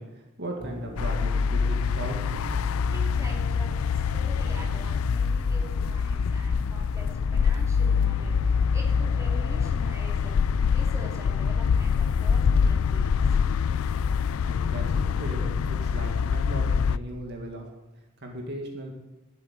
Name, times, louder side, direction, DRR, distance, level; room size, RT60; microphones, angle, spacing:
voice 1, 0.0-2.2 14.4-17.7 18.2-18.9, right 1 dB, 50° right, 1 dB, 1.9 m, -37 dB
sound 1, 0.6-11.4, equal, 5° left, 5.7 m, -42 dB
sound 2, 1.0-17.0, left 6 dB, 75° left, 0.4 m, -25 dB
voice 2, 2.9-10.4 10.7-13.4, equal, 15° right, -1 dB, 2.7 m, -45 dB
12.0 x 7.7 x 8.8 m, 1.0 s
head